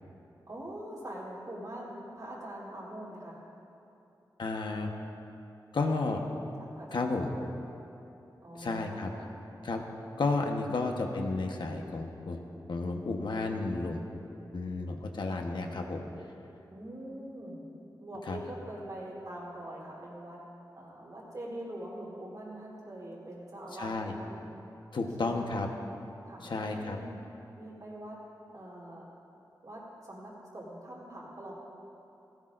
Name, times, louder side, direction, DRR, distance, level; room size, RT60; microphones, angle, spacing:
voice 1, 0.5-3.4 6.7-7.3 8.4-9.3 10.7-11.1 16.7-17.6 18.0-20.4 20.8-24.4 25.2-25.5 26.2-27.2 27.6-28.2 28.5-29.1 29.6-31.5, right 1 dB, 50° right, -5 dB, 3.5 m, -43 dB
voice 2, 4.4-4.9 5.7-6.2 6.9-7.3 8.5-9.1 9.6-9.8 10.2-12.4 12.7-14.0 14.5-16.0 18.3-18.4 23.8-24.1 24.9-25.7 26.4-27.0, left 3 dB, 85° left, 2 dB, 1.2 m, -32 dB
18.0 x 16.5 x 2.6 m, 2.8 s
wide cardioid pair, 115°, 8 cm